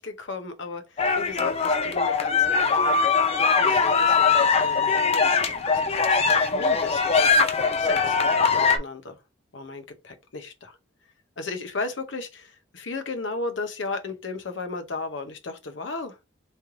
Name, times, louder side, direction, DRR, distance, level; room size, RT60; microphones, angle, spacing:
voice 1, 0.0-3.0 3.4-5.3 5.6-7.3 7.8-9.2 9.5-10.8 11.4-16.2, left 3 dB, 65° left, 0.8 m, -35 dB
sound 1, 1.0-8.8, left 5 dB, 30° left, 0.4 m, -21 dB
3.2 x 3.1 x 3.7 m
head